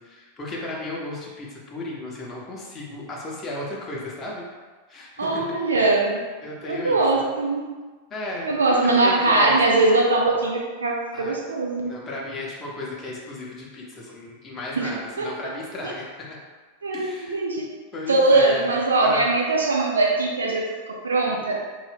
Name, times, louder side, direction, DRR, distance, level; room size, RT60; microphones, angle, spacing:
voice 1, 0.0-4.4 4.9-5.5 6.4-7.3 8.1-9.6 11.1-11.4 11.9-16.4 16.9-17.3 17.9-19.3, left 1 dB, 20° left, -4 dB, 0.8 m, -34 dB
voice 2, 5.2-6.2 6.7-7.6 8.4-12.0 14.8-14.9 15.2-15.3 15.8-15.9 16.8-17.7 18.1-21.6, right 2 dB, 70° right, -1 dB, 0.4 m, -21 dB
3.7 x 2.6 x 3.4 m, 1.4 s
figure-of-eight pair, 90°, 0 cm